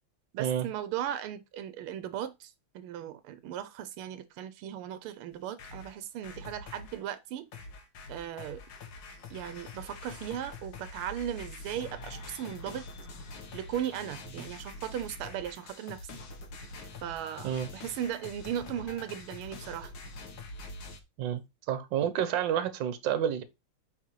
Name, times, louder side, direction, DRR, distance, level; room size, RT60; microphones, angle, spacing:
voice 1, 0.3-7.5 8.1-8.6 9.3-12.9 13.5-16.2 17.0-19.9, right 10 dB, 85° right, 1.5 m, -37 dB
sound 1, 5.3-7.0 7.5-21.0, left 3 dB, 60° left, 1.8 m, -45 dB
voice 2, 21.7-23.4, right 9 dB, 65° right, 1.5 m, -29 dB
9.2 x 4.4 x 3.1 m
omnidirectional pair, 2.3 m